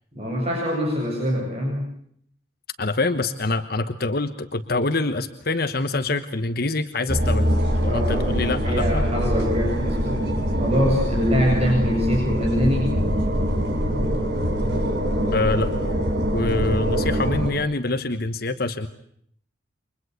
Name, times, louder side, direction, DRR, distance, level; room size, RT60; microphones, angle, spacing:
voice 1, 0.1-1.9 7.9-8.3 8.6-10.3 10.6-12.9, equal, 30° right, -1 dB, 7.8 m, -23 dB
voice 2, 2.8-7.5 7.8-9.0 15.3-15.7 16.3-18.9, left 3 dB, 50° left, 9 dB, 1.2 m, -25 dB
sound 1, 7.1-17.5, equal, 55° right, 4.9 m, -23 dB
29.5 x 25.0 x 8.2 m, 0.68 s
head